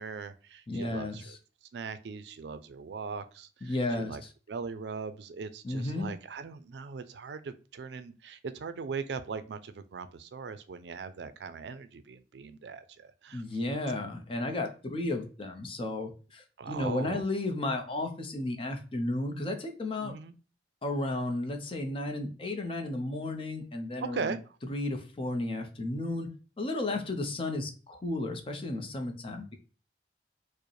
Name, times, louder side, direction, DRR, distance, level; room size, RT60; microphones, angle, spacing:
voice 1, 0.0-1.4 1.7-4.2 4.5-13.4 16.6-17.2 20.0-20.3 24.0-24.4 26.9-27.1, right 5 dB, 75° right, 0.4 m, -40 dB
voice 2, 0.7-1.4 3.6-4.3 5.6-6.1 13.3-20.2 20.8-24.4 24.7-26.3 26.6-29.6, left 2 dB, 30° left, 0.6 m, -33 dB
4.7 x 2.1 x 3.1 m
head